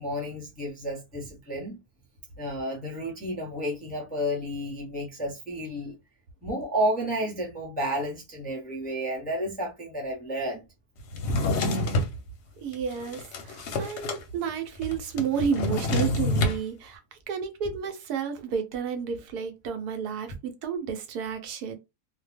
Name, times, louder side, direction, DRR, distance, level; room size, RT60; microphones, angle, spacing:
voice 1, 0.0-1.8 2.4-6.0 6.4-10.7, equal, 10° left, 0.5 m, -31 dB
Drawer open or close, 11.1-12.1 12.7-14.2 14.5-14.6 14.8-16.6, left 2 dB, 60° left, 0.7 m, -27 dB
voice 2, 12.6-21.8, right 6 dB, 80° right, 1.2 m, -31 dB
2.6 x 2.1 x 3.3 m
omnidirectional pair, 1.7 m